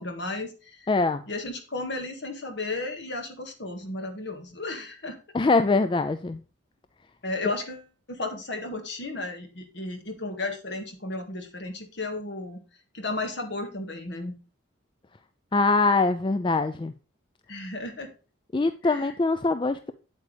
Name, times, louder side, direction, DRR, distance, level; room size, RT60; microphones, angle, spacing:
voice 1, 0.0-0.8 1.3-5.2 7.2-12.6 12.9-14.3 17.5-18.1 18.8-19.1, left 2 dB, 55° left, 1.8 m, -34 dB
voice 2, 0.9-1.2 5.3-6.4 15.5-16.9 18.5-19.9, left 3 dB, 25° left, 0.3 m, -23 dB
8.3 x 8.2 x 3.3 m
head